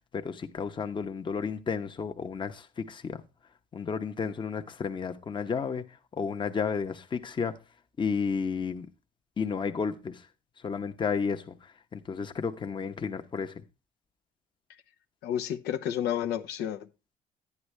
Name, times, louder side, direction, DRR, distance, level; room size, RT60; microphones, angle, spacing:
voice 1, 0.1-3.2 3.7-5.9 6.2-7.6 8.0-8.9 9.4-10.2 10.6-13.6, left 5 dB, 30° left, 0.9 m, -32 dB
voice 2, 15.2-16.9, left 10 dB, 85° left, 1.0 m, -31 dB
11.0 x 9.6 x 3.3 m
cardioid pair, 110°, 17 cm